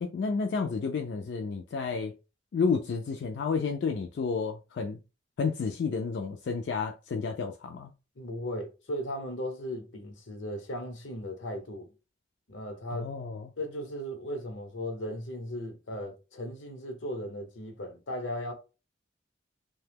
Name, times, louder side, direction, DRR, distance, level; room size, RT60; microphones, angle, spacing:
voice 1, 0.0-2.2 2.5-5.0 5.4-7.9 12.9-13.5, left 5 dB, 60° left, 0.3 m, -31 dB
voice 2, 8.1-11.9 12.5-13.1 13.6-18.5, equal, 85° left, 0.9 m, -37 dB
2.8 x 2.2 x 3.3 m
head